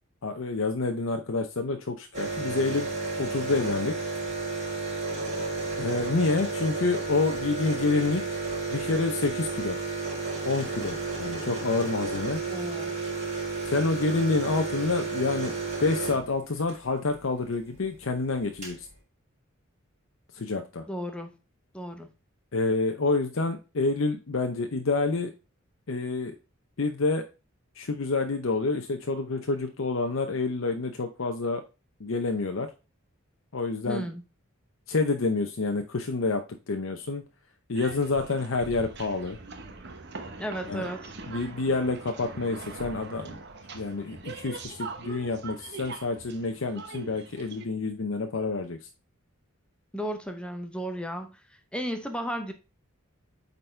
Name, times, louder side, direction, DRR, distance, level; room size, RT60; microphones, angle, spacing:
voice 1, 0.2-2.9 3.2-4.0 5.8-8.4 8.7-9.8 10.4-12.4 13.6-15.5 15.8-18.9 20.3-20.8 22.5-25.3 25.9-26.3 26.8-27.2 27.8-31.6 32.0-32.7 33.5-34.1 34.9-37.2 37.7-39.4 40.7-40.8 41.3-43.4 43.7-48.8, left 3 dB, 70° left, 5 dB, 0.7 m, -28 dB
sound 1, 2.1-16.8 18.1-18.2 18.3-18.8, right 3 dB, 35° right, 3.7 m, -32 dB
voice 2, 12.5-13.0 20.9-21.3 21.7-22.1 33.9-34.2 40.4-41.1 49.9-52.5, equal, 5° left, 6 dB, 0.7 m, -34 dB
sound 2, 37.7-47.6, right 3 dB, 55° right, 1.0 m, -42 dB
8.7 x 4.1 x 3.3 m, 0.30 s
head